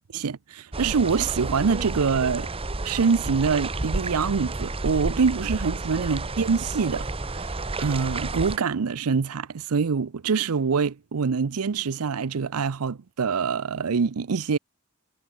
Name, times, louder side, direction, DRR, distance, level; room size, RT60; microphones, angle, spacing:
voice 1, 0.2-2.5 2.8-7.5 7.8-14.6, right 5 dB, 85° right, 0.6 m, -25 dB
sound 1, 0.7-8.6, right 2 dB, 25° right, 1.0 m, -31 dB
head